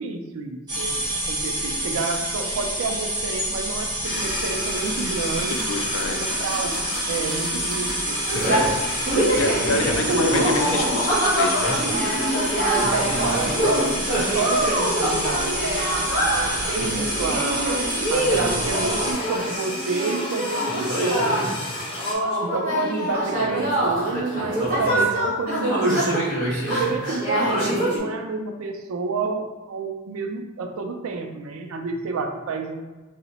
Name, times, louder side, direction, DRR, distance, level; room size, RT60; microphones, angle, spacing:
voice 1, 0.0-5.7 6.1-8.5 9.1-10.3 12.9-17.8 18.1-21.7 22.4-32.8, right 4 dB, 70° right, 5 dB, 0.4 m, -30 dB
sound 1, 0.7-19.1, right 1 dB, 20° right, 0.9 m, -28 dB
sound 2, 4.0-22.2, left 1 dB, 25° left, 0.7 m, -33 dB
voice 2, 5.7-6.2 9.2-11.8, left 3 dB, 65° left, 4 dB, 0.4 m, -27 dB
sound 3, 8.3-28.0, right 1 dB, 40° right, 1.5 m, -24 dB
2.8 x 2.0 x 4.0 m, 1.2 s
head